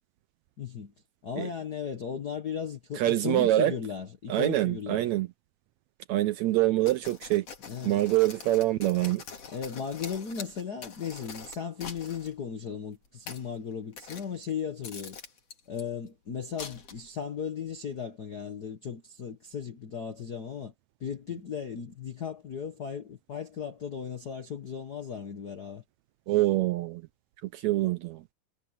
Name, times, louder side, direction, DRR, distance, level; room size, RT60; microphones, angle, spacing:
voice 1, 0.6-0.9 1.2-5.0 7.7-8.0 9.5-15.2 15.7-20.7 21.0-25.8, left 7 dB, 85° left, 0.8 m, -36 dB
voice 2, 3.0-3.7 4.3-5.3 6.1-7.5 7.8-9.2 26.3-27.0 27.4-28.2, right 15 dB, 80° right, 1.6 m, -25 dB
sound 1, 6.9-12.3 13.0-13.5 13.9-14.5 14.8-15.8 16.6-17.2, left 5 dB, 50° left, 3.6 m, -44 dB
omnidirectional pair, 3.8 m